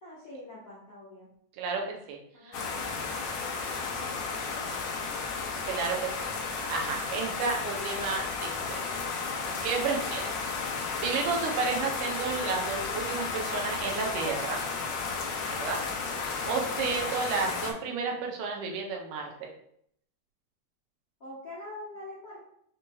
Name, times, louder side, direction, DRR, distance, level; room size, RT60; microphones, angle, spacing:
voice 1, 0.0-1.3 2.3-3.0 3.8-5.0 5.9-6.2 16.6-16.9 21.2-22.4, left 1 dB, 65° left, -9 dB, 0.8 m, -45 dB
voice 2, 1.6-2.6 5.6-6.1 6.4-8.8 9.6-10.3 11.0-14.6 15.5-15.8 16.2-19.5, right 5 dB, 85° right, 1 dB, 2.3 m, -32 dB
sound 1, 2.5-17.7, left 4 dB, 85° left, 1.3 m, -33 dB
6.2 x 3.0 x 2.3 m, 0.69 s
omnidirectional pair, 3.5 m